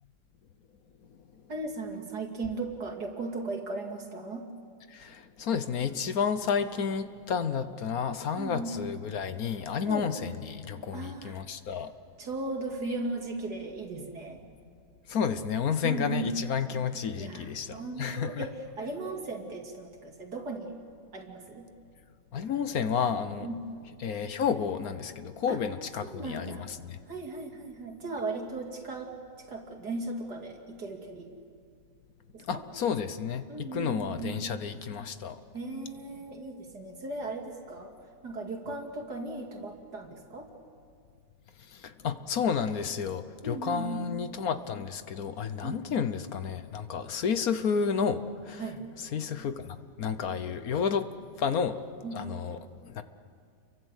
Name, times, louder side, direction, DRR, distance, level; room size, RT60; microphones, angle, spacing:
voice 1, 1.5-4.5 8.4-8.7 9.9-10.1 10.9-11.4 12.2-14.4 15.8-16.3 17.1-20.8 21.1-21.7 23.4-23.6 25.5-25.6 26.0-26.7 27.1-29.1 29.5-31.3 32.3-32.6 33.5-34.4 35.5-37.9 38.2-40.5 43.4-44.1 45.6-45.9 48.6-48.8 52.0-52.4, right 3 dB, 75° right, 2 dB, 3.3 m, -37 dB
voice 2, 4.9-11.9 15.1-18.5 22.3-23.5 24.0-27.0 32.4-35.4 41.7-48.6 49.0-51.1 51.4-53.0, left 6 dB, 65° left, 11 dB, 1.4 m, -31 dB
29.5 x 23.5 x 8.1 m, 2.2 s
omnidirectional pair, 1.7 m